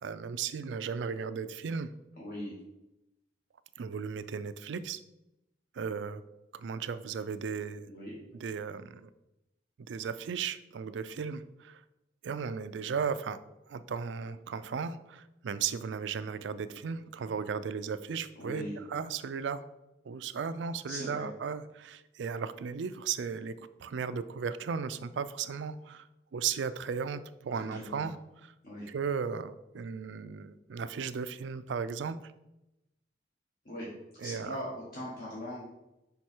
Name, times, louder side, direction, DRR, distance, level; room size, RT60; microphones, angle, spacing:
voice 1, 0.0-1.9 3.8-5.0 5.7-6.2 6.5-7.9 8.4-9.1 9.9-11.8 12.2-13.4 13.7-19.6 20.1-23.5 23.8-26.1 26.3-28.2 28.9-32.3 34.2-34.6, right 6 dB, 80° right, 13 dB, 0.4 m, -36 dB
voice 2, 2.2-2.5 7.8-8.1 18.4-18.8 20.9-21.3 27.5-28.1 28.6-28.9 33.6-33.9 34.2-35.6, equal, 50° left, -6 dB, 1.3 m, -40 dB
5.3 x 4.7 x 4.4 m, 0.93 s
head